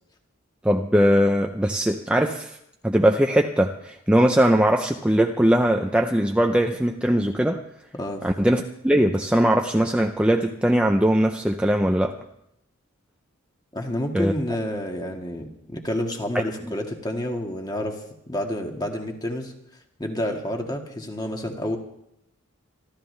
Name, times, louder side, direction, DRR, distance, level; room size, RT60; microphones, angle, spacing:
voice 1, 0.6-2.6 2.8-7.6 8.2-12.2 14.1-14.3, equal, 5° right, 3 dB, 0.6 m, -20 dB
voice 2, 13.7-19.5 20.0-21.8, left 1 dB, 20° left, 2 dB, 1.7 m, -29 dB
27.5 x 12.5 x 3.3 m, 0.78 s
head